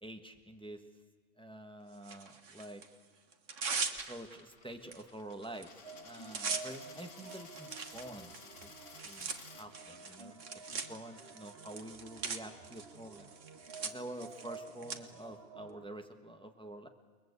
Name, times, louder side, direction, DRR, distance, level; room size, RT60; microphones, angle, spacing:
voice 1, 0.0-0.8 1.4-2.8 4.1-8.3 8.6-8.7 9.0-13.3 13.8-16.9, right 1 dB, 5° left, 5 dB, 1.5 m, -48 dB
Tearing, 2.0-2.9 3.3-4.4 4.9-5.0 5.3-5.6 5.9-15.0, right 5 dB, 90° right, 1.9 m, -41 dB
Coin (dropping), 3.8-9.7, left 5 dB, 90° left, 1.8 m, -55 dB
sound 1, 5.8-15.9, right 4 dB, 60° right, 1.6 m, -52 dB
29.0 x 21.5 x 8.3 m, 1.5 s
omnidirectional pair, 1.2 m